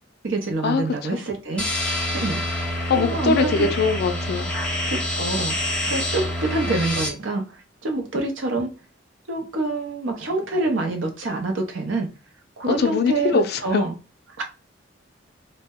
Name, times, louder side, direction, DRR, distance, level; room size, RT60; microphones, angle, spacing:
voice 1, 0.2-1.7 2.1-2.4 2.9-3.7 4.9-5.5 5.9-8.7 9.3-12.1 12.6-13.9 14.4-14.5, right 2 dB, 75° right, 0.6 m, -26 dB
sound 1, 1.6-7.1, left 1 dB, 5° left, 0.6 m, -26 dB
voice 2, 2.9-4.5 12.7-13.8, left 5 dB, 55° left, 0.4 m, -22 dB
2.1 x 2.0 x 3.4 m
head